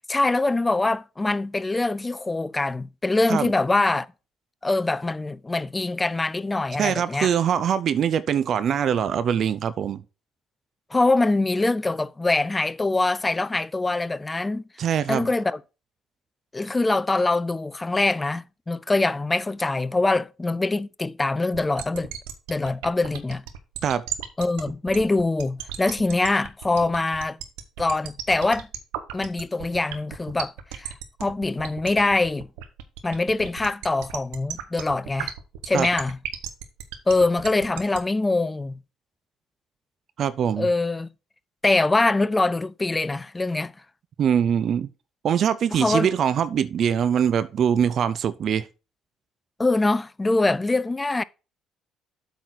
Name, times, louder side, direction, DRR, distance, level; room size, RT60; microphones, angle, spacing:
voice 1, 0.1-4.1 4.6-7.3 10.9-14.6 15.1-15.6 16.5-22.1 22.5-23.4 24.4-27.4 27.8-28.7 29.1-30.9 31.2-32.5 33.0-35.3 35.7-36.2 37.1-38.8 40.6-41.1 41.6-43.7 45.7-46.1 49.6-51.2, left 2 dB, 20° left, 0.5 m, -23 dB
voice 2, 6.8-10.0 14.8-15.2 23.8-24.0 35.7-35.9 40.2-40.7 44.2-44.9 45.2-48.7, right 8 dB, 60° right, 0.5 m, -23 dB
sound 1, 21.5-38.0, right 11 dB, 85° right, 1.0 m, -34 dB
8.0 x 4.0 x 6.2 m
supercardioid pair, 65°, 0 cm